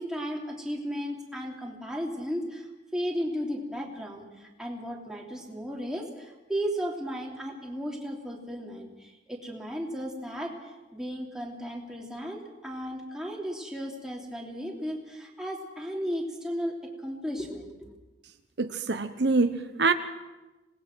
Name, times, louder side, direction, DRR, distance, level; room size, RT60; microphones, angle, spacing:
voice 1, 0.0-2.7 2.9-16.7 17.0-17.9, equal, 5° right, -2 dB, 3.2 m, -35 dB
voice 2, 18.6-19.9, right 3 dB, 65° right, 8 dB, 1.0 m, -25 dB
26.0 x 19.5 x 6.2 m, 1.1 s
head